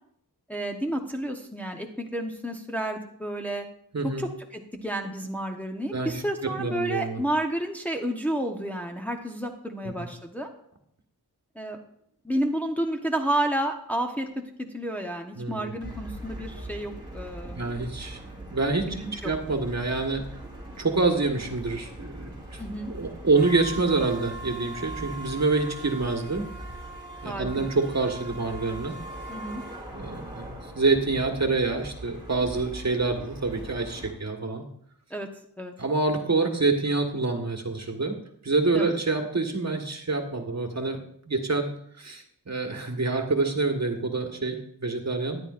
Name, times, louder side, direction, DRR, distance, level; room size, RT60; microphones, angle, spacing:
voice 1, 0.5-3.7 4.0-10.5 11.5-11.8 12.2-14.3 14.7-17.6 18.8-19.3 22.6-22.9 27.2-27.7 29.3-29.6 35.1-35.3 35.6-35.7 38.7-38.9, right 1 dB, 5° left, 2 dB, 1.0 m, -31 dB
voice 2, 3.9-4.2 5.9-7.2 10.0-10.1 15.4-15.8 17.5-18.2 18.5-20.2 20.8-22.6 22.9-26.5 27.2-28.9 29.9-34.6 35.8-38.2 38.4-41.0 41.3-41.7 42.0-45.4, right 3 dB, 45° right, 4 dB, 1.5 m, -27 dB
sound 1, 15.8-34.1, right 1 dB, 10° right, 3.9 m, -40 dB
13.5 x 10.5 x 2.5 m, 0.68 s
wide cardioid pair, 70°, 38 cm